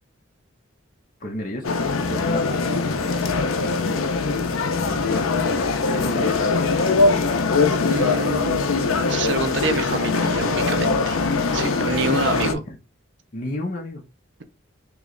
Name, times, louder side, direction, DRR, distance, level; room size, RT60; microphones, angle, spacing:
voice 1, 1.2-3.3 4.8-6.7 11.9-12.8 13.3-14.0, left 1 dB, 40° left, 0.7 m, -32 dB
sound 1, 1.6-12.5, left 4 dB, 85° left, 0.6 m, -22 dB
voice 2, 7.9-11.2 11.5-12.6, right 4 dB, 55° right, 0.5 m, -27 dB
3.1 x 2.9 x 3.7 m
head